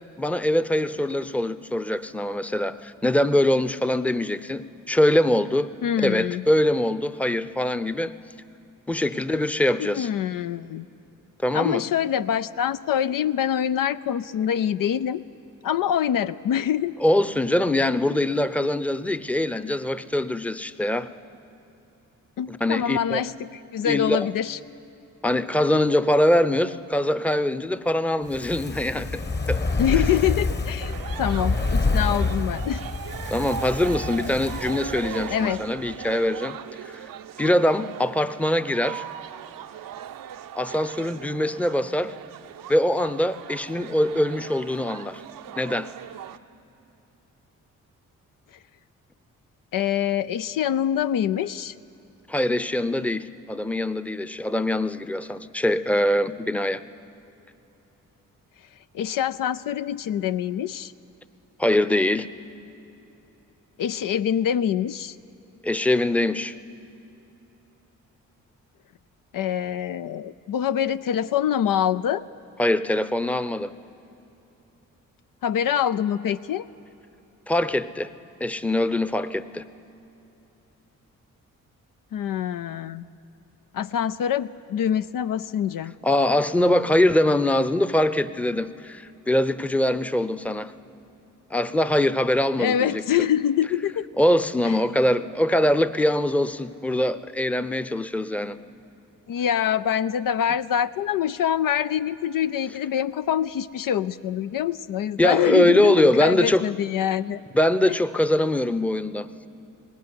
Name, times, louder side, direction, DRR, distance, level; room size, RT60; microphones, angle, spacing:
voice 1, 0.2-5.7 6.0-8.1 8.9-10.1 11.4-11.8 17.0-21.1 22.5-23.2 23.8-24.3 25.2-29.2 29.5-29.6 29.9-30.0 33.3-36.6 37.4-39.0 40.5-42.2 42.7-45.2 45.6-45.9 52.3-56.8 61.6-62.3 65.6-66.5 72.6-73.7 77.5-78.1 78.4-79.6 86.0-90.7 91.5-93.0 94.2-98.6 105.2-106.7 107.5-109.3, left 1 dB, 5° left, 13 dB, 0.7 m, -23 dB
voice 2, 5.8-6.5 9.8-10.9 11.5-15.2 15.6-17.0 22.4-24.6 29.8-32.8 35.3-35.6 49.7-51.7 58.9-60.9 63.8-65.2 69.3-72.2 75.4-76.6 82.1-83.1 83.7-85.9 92.6-94.1 94.6-94.8 99.3-107.4 107.9-108.0, left 9 dB, 70° left, 12 dB, 0.5 m, -25 dB
Fire, 28.2-35.6 35.9-36.0, left 3 dB, 30° left, 1.3 m, -27 dB
sound 1, 30.8-46.4, right 10 dB, 70° right, 0.7 m, -39 dB
19.0 x 17.0 x 9.7 m, 3.0 s
supercardioid pair, 55°, 35 cm